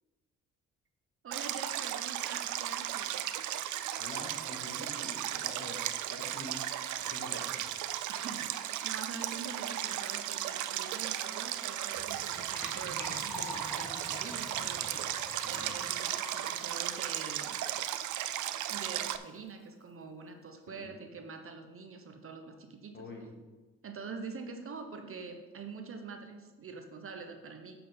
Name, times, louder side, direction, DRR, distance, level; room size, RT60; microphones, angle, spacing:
voice 1, 1.2-3.2 8.1-17.6 18.7-23.1 23.8-27.8, right 4 dB, 45° right, 5 dB, 1.0 m, -45 dB
Stream, 1.3-19.2, right 12 dB, 75° right, 0.5 m, -35 dB
voice 2, 4.0-5.8 6.1-6.7 7.0-7.7 15.4-15.7 20.7-20.9 22.9-23.3, left 2 dB, 40° left, 0 dB, 2.3 m, -46 dB
Gurgling / Trickle dribble / Fill (with liquid), 12.0-18.2 18.4-18.5 18.7-18.9 19.2-19.3, equal, 10° left, 2.4 m, -45 dB
7.5 x 5.8 x 5.5 m, 1.2 s
cardioid pair, 90°, 30 cm